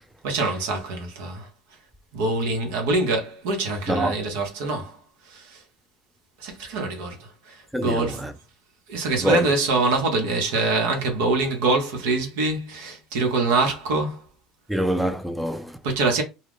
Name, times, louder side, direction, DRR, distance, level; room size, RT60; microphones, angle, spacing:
voice 1, 0.2-1.5 2.1-5.0 5.2-5.6 6.4-8.3 8.9-14.2 15.8-16.2, right 3 dB, 75° right, 0.9 m, -24 dB
voice 2, 7.7-8.3 9.2-9.5 14.7-15.8, equal, 5° right, 0.4 m, -24 dB
2.3 x 2.2 x 3.4 m
hypercardioid pair, 80°, 0 cm